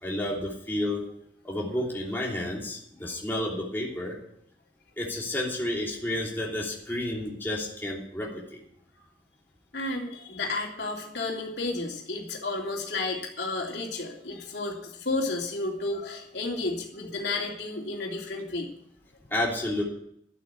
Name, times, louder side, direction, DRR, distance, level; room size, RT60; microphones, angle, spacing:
voice 1, 0.0-1.0 1.4-4.2 5.0-8.6 19.3-19.8, left 1 dB, 10° left, -3 dB, 3.1 m, -31 dB
voice 2, 9.7-18.7, left 2 dB, 75° left, 0 dB, 3.1 m, -32 dB
12.5 x 8.4 x 8.3 m, 0.71 s
head